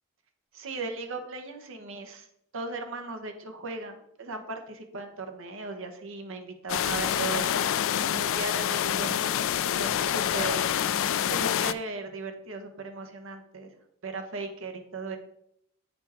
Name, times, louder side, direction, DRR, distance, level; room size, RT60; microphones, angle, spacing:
voice 1, 0.5-2.3 2.5-7.5 8.1-10.7 11.3-13.7 14.0-15.2, right 3 dB, 65° right, 5 dB, 1.0 m, -37 dB
sound 1, 6.7-11.7, left 10 dB, 65° left, 0.3 m, -27 dB
8.5 x 4.5 x 4.3 m, 0.75 s
head